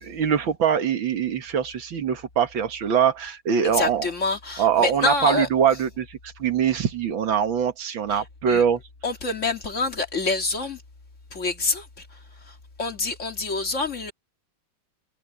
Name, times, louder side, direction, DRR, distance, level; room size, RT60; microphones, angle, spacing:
voice 1, 0.0-4.1 4.6-8.8, right 8 dB, 85° right, 2.4 m, -23 dB
voice 2, 3.7-5.5 8.1-8.2 8.5-8.6 9.0-10.8 11.3-14.1, left 3 dB, 40° left, 2.3 m, -27 dB
omnidirectional pair, 2.1 m